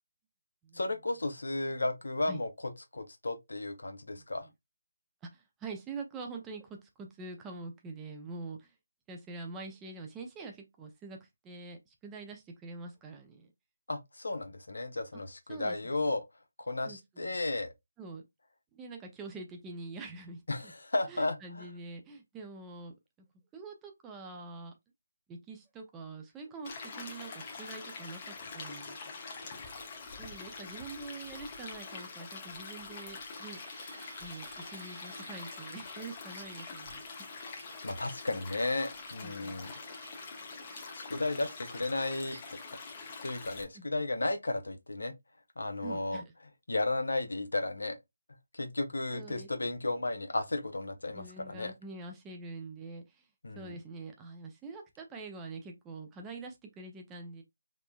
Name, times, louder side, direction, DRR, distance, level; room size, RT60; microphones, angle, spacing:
voice 1, 0.7-4.5 13.9-16.2 16.6-17.7 20.5-21.7 37.8-39.7 40.9-42.4 43.2-45.1 45.6-46.2 46.7-48.0 48.5-51.7 53.4-53.7, left 2 dB, 75° left, 0.6 m, -34 dB
voice 2, 5.3-8.7 9.1-13.5 15.1-15.2 15.5-16.1 16.8-17.4 18.0-18.2 18.7-20.7 21.1-22.9 23.5-24.7 25.3-29.0 30.2-33.6 34.2-37.0 39.2-39.6 43.7-44.0 45.8-46.2 49.1-49.5 51.1-53.2 53.6-57.4, right 3 dB, 10° right, 0.4 m, -45 dB
Stream, 26.6-43.6, left 4 dB, 30° left, 0.6 m, -45 dB
sound 1, 32.8-42.6, right 2 dB, 55° right, 1.4 m, -54 dB
3.1 x 2.1 x 2.2 m
figure-of-eight pair, 155°, 0 cm